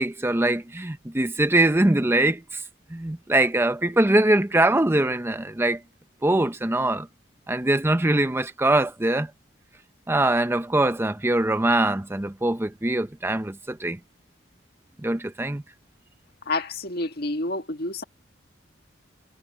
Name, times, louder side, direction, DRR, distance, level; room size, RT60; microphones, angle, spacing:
voice 1, 0.0-2.6 2.9-5.8 6.2-7.1 7.5-9.3 10.1-14.0 15.0-15.6, right 1 dB, 10° right, 0.6 m, -22 dB
voice 2, 16.5-18.0, left 2 dB, 55° left, 1.7 m, -29 dB
head